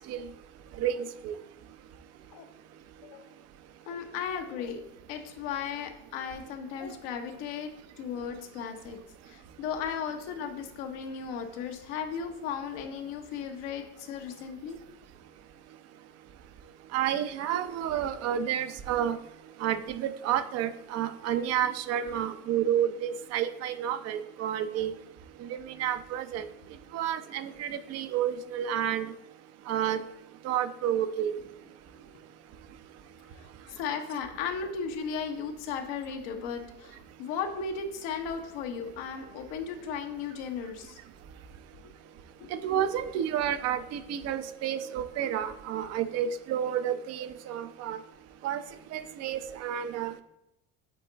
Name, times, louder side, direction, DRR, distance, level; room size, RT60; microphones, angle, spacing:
voice 1, 0.8-1.3 16.9-19.2 19.6-24.9 25.8-26.4 26.9-29.1 29.7-30.0 30.4-31.4 42.5-48.0 48.4-48.6 48.9-50.1, right 10 dB, 55° right, 11 dB, 0.7 m, -30 dB
voice 2, 3.9-4.8 5.1-7.7 8.0-9.0 9.2-14.8 33.3-41.0 41.8-41.9 42.4-42.5, left 6 dB, 75° left, 5 dB, 1.1 m, -36 dB
8.2 x 3.7 x 4.0 m, 0.84 s
supercardioid pair, 95°, 30 cm